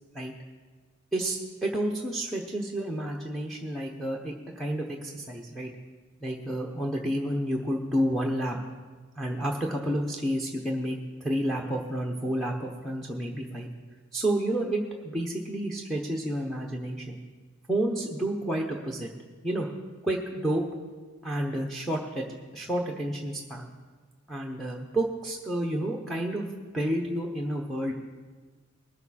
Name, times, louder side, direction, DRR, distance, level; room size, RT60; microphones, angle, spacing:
voice 1, 1.1-5.7 6.2-8.6 9.2-13.7 14.1-17.2 17.7-19.1 19.4-19.7 20.0-20.6 21.2-22.3 22.5-23.7 24.3-26.5 26.7-27.9, right 1 dB, ahead, -1 dB, 0.9 m, -30 dB
20.5 x 6.9 x 4.2 m, 1.4 s
head